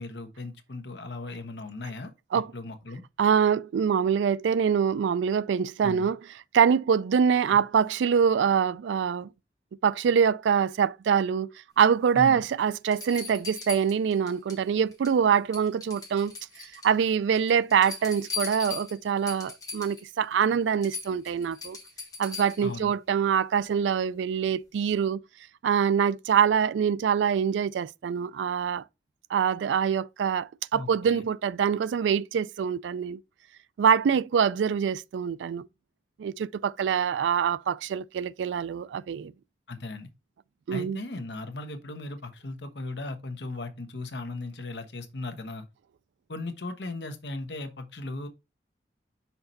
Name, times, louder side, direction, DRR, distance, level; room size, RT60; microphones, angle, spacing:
voice 1, 0.0-2.1 2.5-3.0 5.8-6.1 7.5-7.6 12.1-12.4 22.6-22.9 30.7-31.2 39.7-40.1 40.7-45.7 46.3-48.3, left 2 dB, 75° left, 1.1 m, -37 dB
voice 2, 3.2-6.2 6.5-9.3 9.8-21.8 22.2-25.2 25.6-28.8 29.3-33.2 33.8-35.7 36.2-39.3 40.7-41.0, right 7 dB, 85° right, 0.3 m, -24 dB
sound 1, 12.2-12.3 12.9-14.6 14.9-15.3 15.5-17.0 17.4-20.1 20.4-20.5 20.8-22.7 24.4-24.5, left 5 dB, 20° left, 1.9 m, -39 dB
5.8 x 4.4 x 3.9 m
head